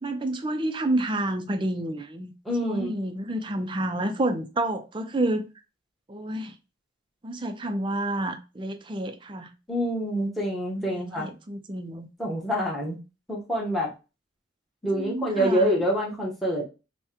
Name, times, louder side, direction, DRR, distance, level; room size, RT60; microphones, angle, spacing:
voice 1, 0.0-2.3 2.6-5.5 6.1-6.6 7.2-9.5 10.9-12.1 14.9-15.7, right 1 dB, 25° right, 0.4 m, -29 dB
voice 2, 2.4-2.9 9.7-11.3 12.2-13.0 13.3-13.9 14.8-16.6, equal, ahead, 1.1 m, -26 dB
5.6 x 2.2 x 2.9 m
head